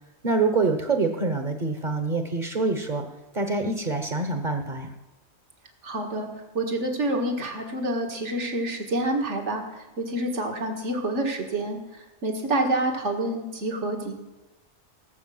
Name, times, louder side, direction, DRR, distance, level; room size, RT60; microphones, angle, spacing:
voice 1, 0.2-3.0 3.3-4.9, right 3 dB, 40° right, 5 dB, 1.2 m, -25 dB
voice 2, 5.8-6.3 6.5-14.2, right 1 dB, 70° right, 3 dB, 2.1 m, -28 dB
18.0 x 6.8 x 7.7 m, 1.1 s
omnidirectional pair, 1.3 m